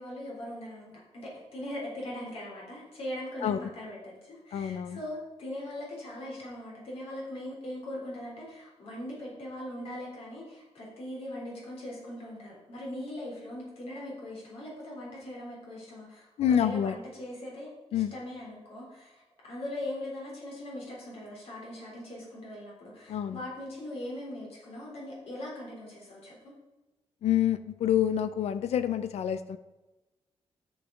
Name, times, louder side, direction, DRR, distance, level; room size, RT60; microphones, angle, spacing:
voice 1, 0.0-26.5, left 1 dB, 70° left, -4 dB, 3.5 m, -40 dB
voice 2, 4.5-5.0 16.4-17.0 17.9-18.1 23.1-23.4 27.2-29.6, left 10 dB, 85° left, 12 dB, 0.6 m, -27 dB
10.0 x 7.2 x 3.8 m, 1.1 s
wide cardioid pair, 165°, 11 cm